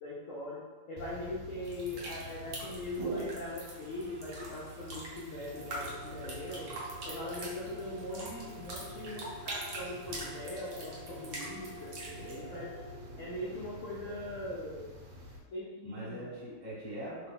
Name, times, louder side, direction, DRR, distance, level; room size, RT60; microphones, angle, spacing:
voice 1, 0.0-6.7 7.0-11.9 12.4-12.8 13.2-15.0 15.5-16.3, left 1 dB, 85° left, -5 dB, 0.6 m, -41 dB
sound 1, 1.0-15.4, right 1 dB, 90° right, 1.3 m, -45 dB
sound 2, 1.6-12.4, right 2 dB, 55° right, 0.9 m, -45 dB
voice 2, 12.0-12.7 15.8-17.3, right 1 dB, 20° right, -9 dB, 0.8 m, -43 dB
3.3 x 2.2 x 3.6 m, 1.3 s
omnidirectional pair, 2.0 m